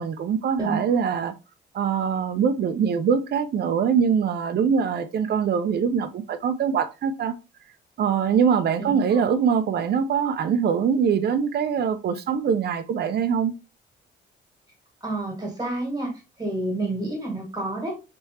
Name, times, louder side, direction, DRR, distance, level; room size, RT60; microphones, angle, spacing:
voice 1, 0.0-1.3 1.7-7.3 8.0-13.5, right 7 dB, 55° right, 0.6 m, -23 dB
voice 2, 15.0-16.1 16.4-17.9, right 2 dB, 20° right, 1.9 m, -29 dB
3.4 x 3.2 x 2.9 m
cardioid pair, 90°, 20 cm